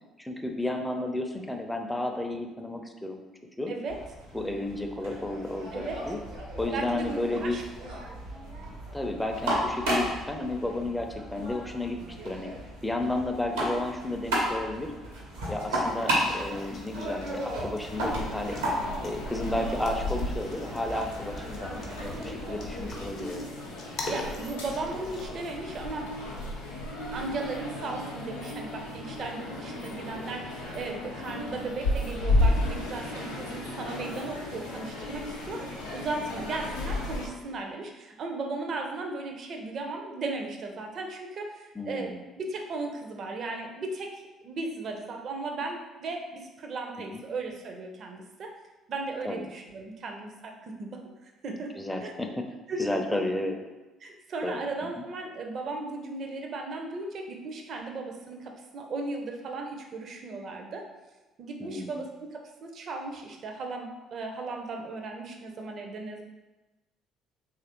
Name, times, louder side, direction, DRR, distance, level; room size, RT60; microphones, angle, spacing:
voice 1, 0.2-3.3 3.6-3.7 4.3-6.2 6.6-7.6 8.9-12.5 12.8-14.9 15.5-18.6 19.0-21.7 22.0-23.5 31.4-31.6 41.8-42.2 47.1-47.2 49.2-49.5 51.8-52.4 52.8-53.6 54.4-54.6 61.6-62.1, left 1 dB, 10° left, 4 dB, 0.4 m, -32 dB
voice 2, 3.7-4.0 5.7-6.0 6.7-7.6 8.0-8.2 18.0-18.1 22.1-22.4 24.1-26.1 27.1-48.5 48.9-51.8 52.0-53.2 54.0-60.9 61.4-66.2, right 3 dB, 55° right, 3 dB, 0.5 m, -36 dB
sound 1, 3.9-23.1, right 1 dB, 85° right, 0.8 m, -34 dB
sound 2, 15.9-25.3, left 2 dB, 55° left, 0.6 m, -45 dB
sound 3, 17.8-37.3, left 1 dB, 90° left, 0.5 m, -33 dB
2.9 x 2.4 x 2.9 m, 1.1 s
hypercardioid pair, 55°, 0 cm